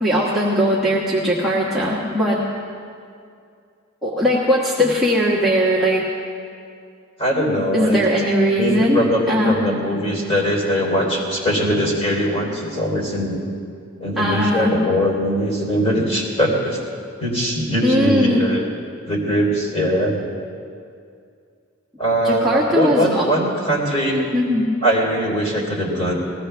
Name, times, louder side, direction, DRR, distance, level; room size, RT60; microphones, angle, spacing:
voice 1, 0.0-2.4 4.0-6.0 7.7-9.0 9.3-9.6 14.2-14.7 17.8-18.4 22.2-23.2 24.3-24.7, equal, ahead, -7 dB, 1.3 m, -19 dB
voice 2, 7.2-8.2 8.6-13.4 14.0-16.8 17.2-18.6 19.1-20.2 22.0-24.2 24.8-26.1, equal, 30° left, -2 dB, 3.5 m, -21 dB
20.0 x 16.0 x 3.4 m, 2.3 s
head